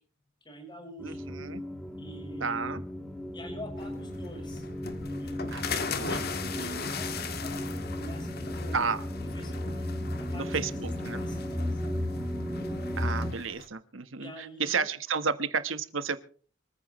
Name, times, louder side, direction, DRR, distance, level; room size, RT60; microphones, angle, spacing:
voice 1, 0.4-1.3 2.0-2.7 3.3-4.7 5.2-5.7 6.1-8.8 9.3-9.7 10.3-10.8 11.2-11.9 14.2-14.9, right 1 dB, 25° left, 4 dB, 5.8 m, -46 dB
sound 1, 1.0-13.3, left 1 dB, 5° left, 2.9 m, -35 dB
voice 2, 1.0-1.6 2.4-2.8 5.5-6.9 8.7-9.0 10.3-11.2 12.9-16.2, right 5 dB, 90° right, 11 dB, 1.4 m, -32 dB
sound 2, 3.8-13.7, left 5 dB, 55° left, 1.9 m, -39 dB
24.5 x 14.5 x 3.2 m, 0.43 s
head